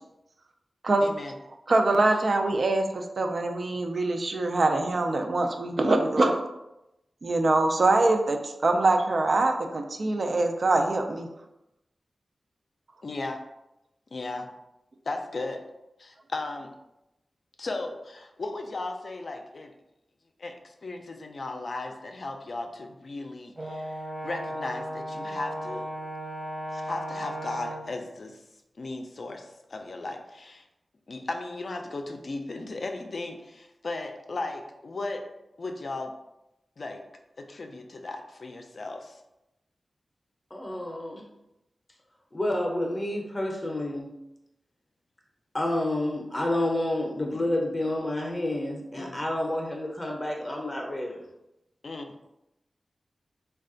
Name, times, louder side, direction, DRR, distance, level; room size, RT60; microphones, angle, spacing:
voice 1, 1.0-1.3 13.0-13.4 14.1-14.5 15.1-15.6 16.0-16.7 17.6-19.7 20.4-25.9 26.7-28.4 28.8-30.6 31.1-35.2 35.6-36.1 36.8-37.0 37.4-39.2 49.0-49.2 51.8-52.1, left 2 dB, 60° left, 4 dB, 0.4 m, -36 dB
voice 2, 1.7-6.4 7.2-11.3, right 2 dB, 60° right, 4 dB, 0.4 m, -24 dB
Brass instrument, 23.6-28.0, equal, 25° right, 0.7 m, -36 dB
voice 3, 40.5-41.3 42.3-44.1 45.5-51.2, left 1 dB, 25° left, 0 dB, 0.6 m, -29 dB
3.3 x 2.3 x 3.8 m, 0.90 s
wide cardioid pair, 80°, 0 cm